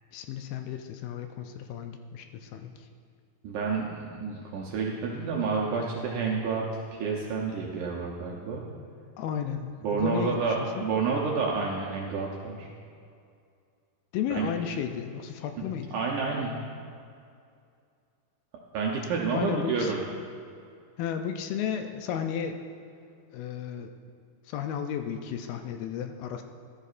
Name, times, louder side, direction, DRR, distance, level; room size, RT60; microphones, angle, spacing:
voice 1, 0.1-2.7 9.2-10.4 10.8-10.9 14.1-15.9 19.3-20.0 21.0-22.6 23.3-23.9 24.5-26.4, left 8 dB, 80° left, 6 dB, 2.3 m, -33 dB
voice 2, 3.4-6.6 6.9-8.6 9.8-12.7 14.3-14.5 15.6-15.7 15.9-16.6 18.7-20.0, right 4 dB, 75° right, -2 dB, 1.9 m, -29 dB
13.5 x 12.5 x 2.5 m, 2.4 s
omnidirectional pair, 4.4 m